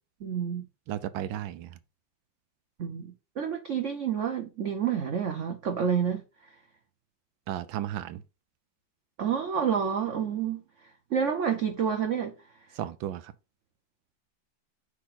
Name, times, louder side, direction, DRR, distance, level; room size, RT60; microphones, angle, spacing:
voice 1, 0.2-0.7 2.8-6.2 9.2-10.6 11.1-12.3, right 7 dB, 55° right, 0.9 m, -29 dB
voice 2, 0.9-1.7 7.5-8.2 12.7-13.3, right 11 dB, 85° right, 1.3 m, -34 dB
6.1 x 3.1 x 5.7 m
omnidirectional pair, 2.1 m